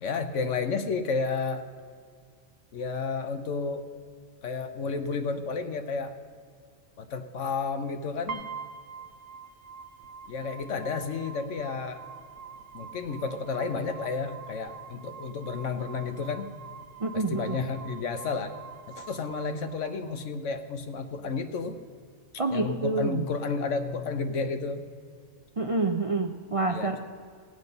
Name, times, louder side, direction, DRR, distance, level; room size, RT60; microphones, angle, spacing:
voice 1, 0.0-1.6 2.7-3.8 4.4-6.1 7.0-8.4 10.3-12.0 12.7-16.5 17.1-18.5 18.9-21.8 22.5-24.9 26.7-27.0, left 4 dB, 70° left, 8 dB, 1.2 m, -31 dB
sound 1, 8.3-20.3, right 6 dB, 75° right, 1.1 m, -45 dB
voice 2, 17.0-17.6 22.4-23.2 25.6-27.0, right 3 dB, 40° right, 4 dB, 0.5 m, -28 dB
17.5 x 8.0 x 5.4 m, 2.1 s
omnidirectional pair, 1.3 m